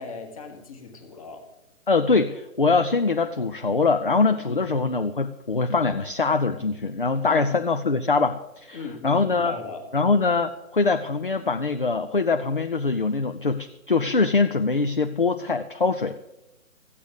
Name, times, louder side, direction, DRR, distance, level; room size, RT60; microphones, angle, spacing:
voice 1, 0.0-1.4 4.5-4.7 7.2-7.5 8.7-9.9, left 4 dB, 25° left, 5 dB, 1.4 m, -37 dB
voice 2, 1.9-9.5 9.9-16.2, left 4 dB, 40° left, 8 dB, 0.4 m, -23 dB
14.0 x 8.4 x 6.9 m, 0.92 s
hypercardioid pair, 165°, 42 cm